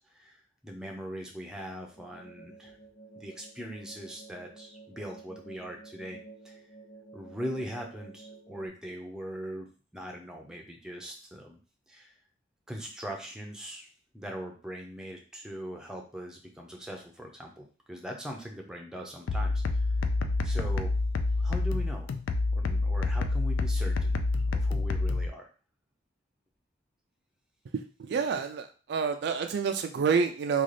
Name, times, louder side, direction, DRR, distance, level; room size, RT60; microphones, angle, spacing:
voice 1, 0.6-2.8 3.1-6.2 6.4-6.6 7.1-9.7 9.9-11.6 11.9-12.1 12.7-13.9 14.1-19.8 20.4-20.9 21.4-22.1 22.5-24.2 24.5-25.5, equal, 5° right, 1 dB, 0.6 m, -40 dB
sound 1, 1.9-8.7, right 3 dB, 35° left, 2.0 m, -51 dB
sound 2, 19.3-25.3, left 3 dB, 80° left, 0.4 m, -28 dB
voice 2, 27.7-30.6, right 6 dB, 60° right, 6 dB, 0.3 m, -28 dB
3.8 x 2.4 x 3.2 m, 0.36 s
head